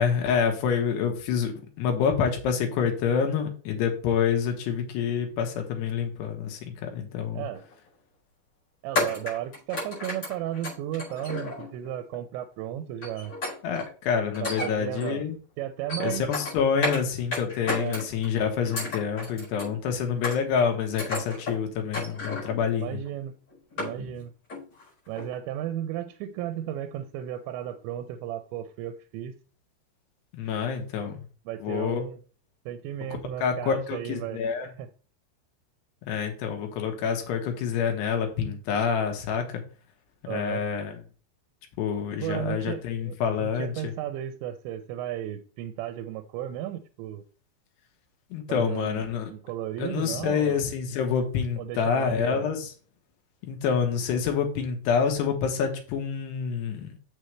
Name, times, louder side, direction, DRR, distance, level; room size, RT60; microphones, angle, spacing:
voice 1, 0.0-7.5 13.6-15.4 16.0-23.0 30.3-31.2 31.6-32.0 33.4-34.7 36.1-39.6 40.3-41.0 41.8-43.9 48.3-49.3 49.8-52.7 53.4-56.9, left 7 dB, 75° left, 4 dB, 3.2 m, -27 dB
sound 1, 7.5-7.7 8.9-11.9 13.0-13.9 14.3-15.2 15.6-17.0 17.3-18.3 18.6-19.7 20.2-20.7 21.0-21.6 21.9-22.6 23.1-23.2 23.5-24.2 24.5-24.8 25.2-25.3, left 2 dB, 30° left, 5.3 m, -33 dB
voice 2, 8.8-13.4 14.4-15.3 15.6-16.3 17.7-18.0 22.8-23.3 23.8-24.3 25.1-29.4 31.5-32.2 32.7-34.9 40.3-40.6 42.2-47.2 48.5-49.1 49.3-50.6 51.6-52.5, right 12 dB, 85° right, 9 dB, 2.8 m, -34 dB
7.6 x 6.9 x 3.2 m, 0.38 s
omnidirectional pair, 5.1 m